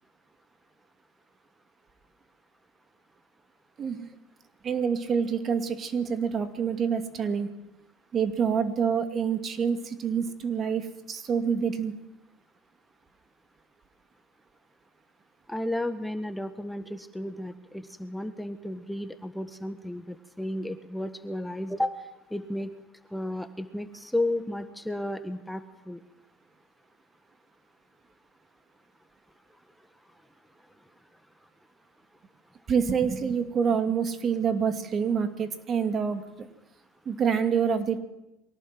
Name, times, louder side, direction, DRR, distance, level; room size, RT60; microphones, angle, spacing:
voice 1, 3.8-4.1 4.6-7.5 8.1-11.9 32.7-36.5 37.1-38.0, right 6 dB, 40° right, 8 dB, 2.5 m, -27 dB
voice 2, 15.5-22.0 22.3-22.7 23.1-26.0, left 1 dB, 5° left, 9 dB, 1.6 m, -33 dB
23.5 x 18.0 x 7.8 m, 0.94 s
hypercardioid pair, 75°, 0 cm